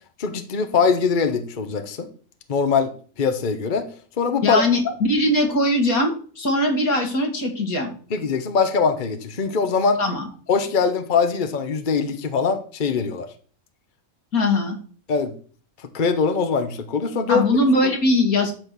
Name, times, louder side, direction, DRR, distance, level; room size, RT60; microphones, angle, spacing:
voice 1, 0.2-2.1 2.5-2.9 3.2-3.9 4.2-4.6 8.1-10.0 10.5-13.3 15.1-15.3 15.9-17.5, left 5 dB, 35° left, 8 dB, 1.1 m, -22 dB
voice 2, 4.4-7.9 10.0-10.2 14.3-14.8 17.3-18.5, left 1 dB, 75° left, 3 dB, 2.7 m, -20 dB
12.0 x 4.6 x 6.9 m, 0.43 s
omnidirectional pair, 1.5 m